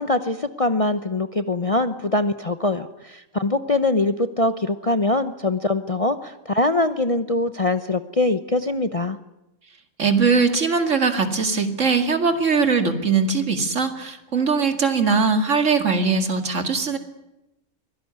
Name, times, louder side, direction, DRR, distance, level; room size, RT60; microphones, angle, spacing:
voice 1, 0.0-9.2, left 2 dB, 30° left, 9 dB, 0.8 m, -23 dB
voice 2, 10.0-17.0, right 5 dB, 60° right, 7 dB, 2.5 m, -21 dB
24.0 x 17.5 x 9.5 m, 0.93 s
omnidirectional pair, 1.4 m